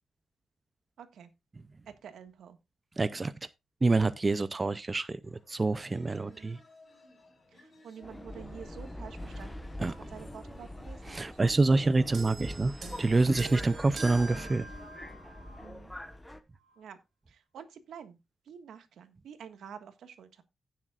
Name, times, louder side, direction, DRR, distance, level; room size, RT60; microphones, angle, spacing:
voice 1, 1.0-1.3 1.9-2.6 6.2-6.6 7.5-11.3 15.6-15.9 16.8-17.0 17.3-18.2 18.4-20.4, right 7 dB, 75° right, 1.5 m, -49 dB
voice 2, 3.0-3.3 3.8-6.6 9.8-9.9 11.1-14.7, right 3 dB, 20° right, 0.4 m, -27 dB
sound 1, 5.2-13.1, left 2 dB, 30° left, 4.4 m, -59 dB
Subway metro underground, 8.0-16.4, left 1 dB, 5° left, 1.0 m, -43 dB
sound 2, 12.1-15.7 16.6-16.8, right 3 dB, 45° right, 3.5 m, -45 dB
16.5 x 7.4 x 2.4 m
wide cardioid pair, 165°, 0 cm